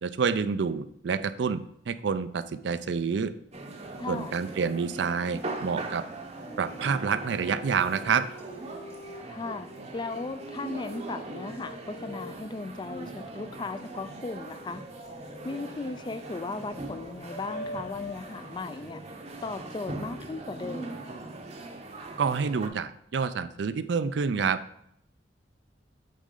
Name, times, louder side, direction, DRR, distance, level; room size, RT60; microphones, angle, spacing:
voice 1, 0.0-3.3 4.1-6.0 6.6-8.3 22.2-24.6, right 5 dB, 65° right, 13 dB, 0.4 m, -28 dB
sound 1, 3.5-22.7, right 2 dB, 35° right, 0.7 m, -41 dB
voice 2, 4.0-4.3 9.2-14.8 15.4-19.0 19.4-21.0, left 3 dB, 25° left, 11 dB, 0.3 m, -37 dB
sound 2, 5.3-5.4 5.8-9.2 9.5-12.3 12.7-18.1, left 1 dB, 55° left, 1.0 m, -46 dB
8.3 x 4.2 x 3.8 m, 0.74 s
head